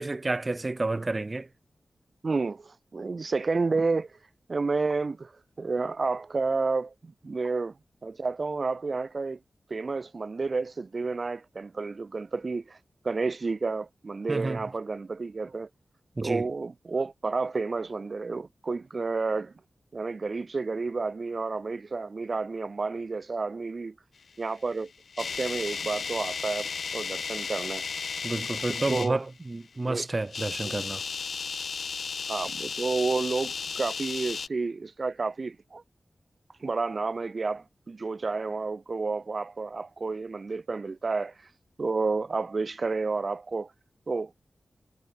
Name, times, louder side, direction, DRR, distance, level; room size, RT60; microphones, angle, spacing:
voice 1, 0.0-1.5 14.3-14.6 16.2-16.5 28.2-31.0, right 2 dB, 35° right, 5.2 m, -30 dB
voice 2, 2.2-4.1 4.5-5.3 5.6-7.7 8.0-9.4 9.7-12.8 13.0-15.7 16.2-19.5 19.9-23.9 24.4-24.9 25.2-27.9 28.9-29.2 29.8-30.1 30.6-30.8 32.3-35.8 36.6-41.3 41.8-43.7 44.1-44.3, right 4 dB, 50° right, 4.3 m, -30 dB
sound 1, 24.7-29.1 30.2-34.5, left 5 dB, 80° left, 3.7 m, -34 dB
wide cardioid pair, 70°, 0 cm